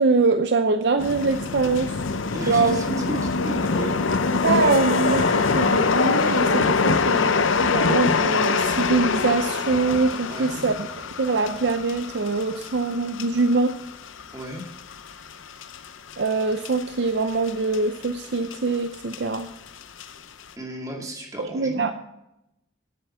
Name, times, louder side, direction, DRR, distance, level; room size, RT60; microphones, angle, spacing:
voice 1, 0.0-2.0 2.5-2.8 4.3-13.8 16.2-19.5 21.4-21.9, right 3 dB, 60° right, 8 dB, 0.6 m, -23 dB
sound 1, 1.0-16.8 17.3-17.8 18.0-19.4 19.8-20.1, left 4 dB, 90° left, 0.7 m, -24 dB
voice 2, 2.3-4.0 10.3-10.8 14.3-14.7 20.6-21.9, right 1 dB, 20° right, 1 dB, 2.2 m, -33 dB
Percussion / Church bell, 4.6-9.6, left 1 dB, 60° left, 3.3 m, -40 dB
10.5 x 7.9 x 5.9 m, 0.86 s
head